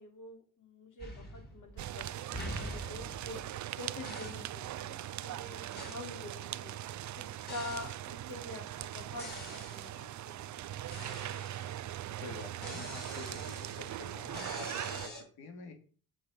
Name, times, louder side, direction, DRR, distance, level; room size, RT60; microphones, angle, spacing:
voice 1, 0.0-3.4 3.8-6.7 7.1-7.9 8.3-10.1, left 2 dB, 55° left, 3 dB, 3.0 m, -46 dB
sound 1, 1.0-1.9 2.3-3.7 4.0-4.5 5.8-6.1 7.5-8.0 9.2-10.0 10.9-12.0 12.6-15.2, left 1 dB, 25° left, 5.3 m, -45 dB
sound 2, 1.8-15.1, right 12 dB, 50° right, 0.5 m, -41 dB
voice 2, 12.1-15.7, left 4 dB, 75° left, 4 dB, 2.4 m, -48 dB
7.7 x 6.9 x 5.2 m, 0.40 s
cardioid pair, 110°, 38 cm